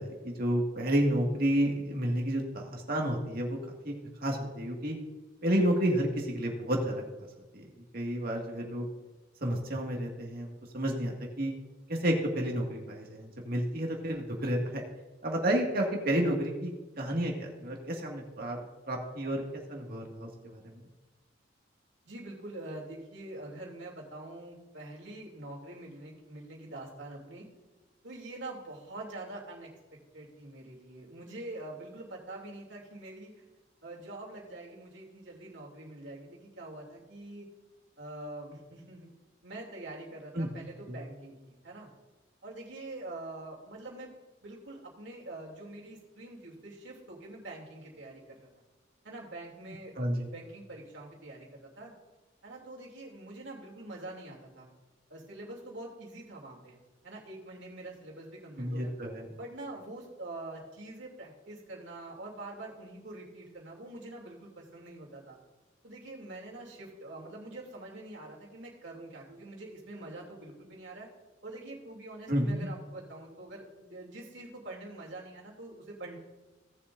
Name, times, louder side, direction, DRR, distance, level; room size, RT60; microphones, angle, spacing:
voice 1, 0.0-3.6 3.8-3.9 4.2-5.0 5.4-6.9 7.5-7.6 7.9-8.9 9.4-11.5 11.9-14.8 15.2-20.8 40.3-40.5 40.9-41.0 50.0-50.3 58.6-59.2 72.3-72.7, right 1 dB, 55° right, 0 dB, 2.0 m, -31 dB
voice 2, 22.0-27.4 28.0-33.4 33.8-37.5 38.0-39.1 39.4-41.9 42.4-44.1 44.4-48.5 49.0-51.9 52.4-54.7 55.1-56.8 57.0-58.9 59.3-65.4 65.8-71.1 71.4-76.2, right 2 dB, 70° right, -2 dB, 2.8 m, -45 dB
17.5 x 7.2 x 2.6 m, 1.2 s
head